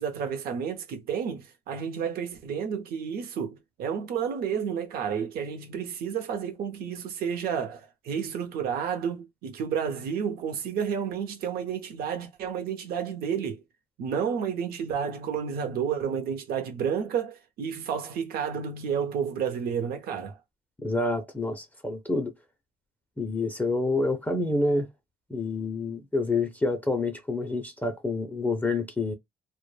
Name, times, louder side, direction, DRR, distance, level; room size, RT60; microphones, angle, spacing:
voice 1, 0.0-13.6 14.0-20.4, right 7 dB, 65° right, 0.7 m, -31 dB
voice 2, 20.8-22.3 23.2-24.9 25.3-29.1, left 2 dB, 10° left, 0.5 m, -28 dB
2.1 x 2.0 x 3.2 m
cardioid pair, 110°, 17 cm